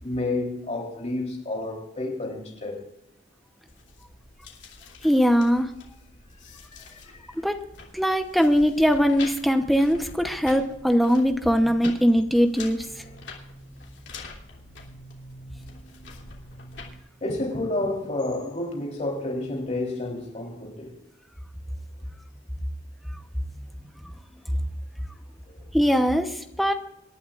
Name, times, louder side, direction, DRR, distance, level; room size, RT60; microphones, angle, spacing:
voice 1, 0.0-2.9 6.5-6.6 6.9-7.2 13.0-13.2 17.2-21.0 25.5-25.6, left 2 dB, 35° left, 3.6 m, -30 dB
sound 1, 3.7-16.9, left 3 dB, 65° left, 3.3 m, -45 dB
voice 2, 5.0-5.7 7.4-7.6 7.9-12.8 25.7-26.7, equal, ahead, 0.9 m, -21 dB
26.0 x 11.5 x 2.5 m
head